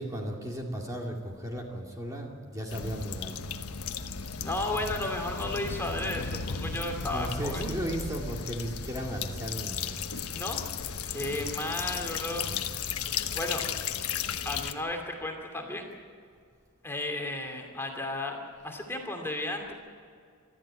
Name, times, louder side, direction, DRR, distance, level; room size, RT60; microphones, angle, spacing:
voice 1, 0.0-3.4 7.1-10.0 11.2-11.5 12.4-13.0, equal, 15° right, 0 dB, 2.4 m, -36 dB
sound 1, 2.7-14.7, left 6 dB, 85° left, 1.2 m, -35 dB
voice 2, 4.4-7.6 10.3-12.5 13.3-13.6 14.4-15.9 16.8-18.4 18.6-19.7, left 2 dB, 10° left, 2 dB, 2.5 m, -34 dB
26.0 x 13.5 x 8.9 m, 2.2 s
head